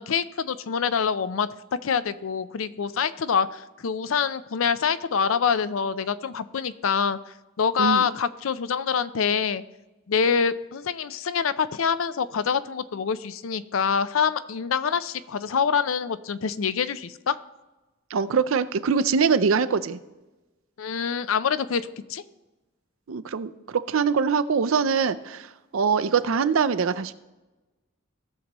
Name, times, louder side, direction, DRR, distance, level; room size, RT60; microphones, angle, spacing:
voice 1, 0.0-1.5 1.8-7.2 7.6-9.6 10.1-17.4 20.8-21.8 22.1-22.2, left 6 dB, 80° left, 14 dB, 0.5 m, -25 dB
voice 2, 18.1-20.0 23.1-25.5 25.7-27.1, right 5 dB, 80° right, 12 dB, 0.5 m, -23 dB
17.5 x 6.7 x 3.0 m, 1.1 s
head